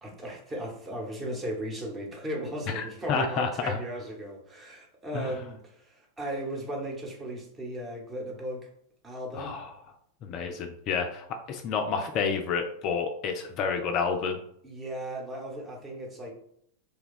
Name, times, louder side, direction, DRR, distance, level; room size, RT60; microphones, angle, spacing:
voice 1, 0.0-8.7 9.0-9.6 14.6-16.3, right 1 dB, 15° right, 0 dB, 0.9 m, -36 dB
voice 2, 2.7-3.8 5.1-5.4 9.3-9.7 10.2-14.4, left 5 dB, 35° left, 5 dB, 0.3 m, -30 dB
2.6 x 2.2 x 4.0 m, 0.69 s
figure-of-eight pair, 90°, 0 cm